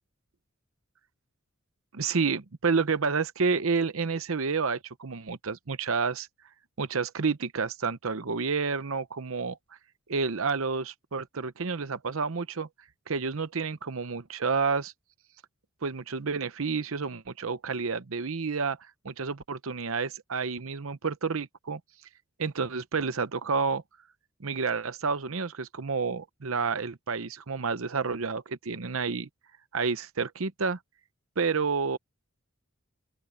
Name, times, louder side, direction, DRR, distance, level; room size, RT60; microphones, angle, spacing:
voice 1, 1.9-6.3 6.8-9.6 10.1-12.7 13.1-14.9 15.8-18.8 19.0-21.8 22.4-23.8 24.4-29.3 29.7-30.8 31.4-32.0, right 5 dB, 70° right, 0.8 m, -29 dB
open air
head